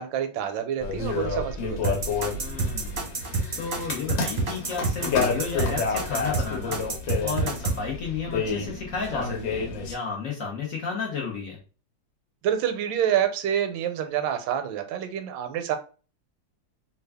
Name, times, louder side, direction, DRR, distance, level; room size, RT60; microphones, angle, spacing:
voice 1, 0.0-2.0 12.4-15.8, right 9 dB, 80° right, 8 dB, 1.3 m, -27 dB
sound 1, 0.8-9.9, left 4 dB, 75° left, 1.6 m, -30 dB
sound 2, 1.8-7.8, right 3 dB, 40° right, 0.8 m, -28 dB
voice 2, 2.4-3.1 3.6-6.8 7.2-11.6, left 5 dB, 60° left, -1 dB, 0.9 m, -33 dB
3.3 x 2.3 x 3.3 m, 0.36 s
omnidirectional pair, 2.1 m